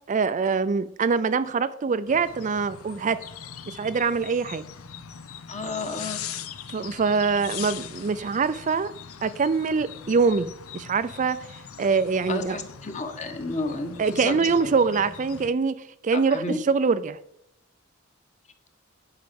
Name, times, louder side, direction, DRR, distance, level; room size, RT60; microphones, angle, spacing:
voice 1, 0.1-3.2 3.7-4.6 6.7-8.9 9.2-11.5 11.8-12.6 14.0-15.7 16.0-17.2, right 5 dB, 35° right, 0.4 m, -24 dB
sound 1, 2.1-15.5, left 7 dB, 80° left, 0.7 m, -41 dB
voice 2, 5.5-6.3 12.3-14.8 16.1-16.6, left 2 dB, 35° left, 1.4 m, -32 dB
9.6 x 5.7 x 7.0 m
head